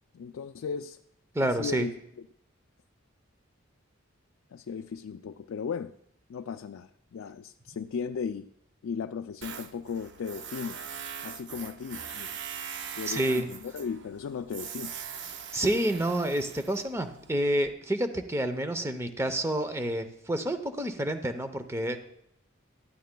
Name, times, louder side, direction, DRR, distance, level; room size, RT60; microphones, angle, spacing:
voice 1, 0.1-1.0 1.4-1.9 4.5-5.9 6.3-8.5 8.8-10.8 11.2-12.3 12.9-14.9, left 6 dB, 80° left, 7 dB, 0.4 m, -36 dB
voice 2, 1.3-1.9 13.1-13.5 15.5-22.0, right 1 dB, 15° right, 8 dB, 0.7 m, -29 dB
Tools, 9.4-17.7, right 7 dB, 60° right, 0.6 m, -42 dB
18.0 x 12.5 x 2.3 m, 0.74 s
head